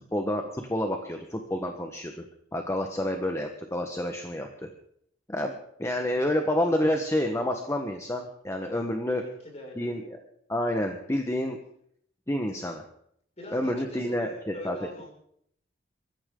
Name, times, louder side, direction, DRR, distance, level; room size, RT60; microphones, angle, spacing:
voice 1, 0.1-2.2 2.5-4.7 5.3-9.2 9.8-10.2 10.5-11.6 12.3-12.8 13.5-14.8, left 1 dB, 15° left, 4 dB, 1.3 m, -29 dB
voice 2, 9.1-10.0 13.4-15.1, equal, 35° left, 0 dB, 6.3 m, -42 dB
23.5 x 14.5 x 3.9 m, 0.69 s
head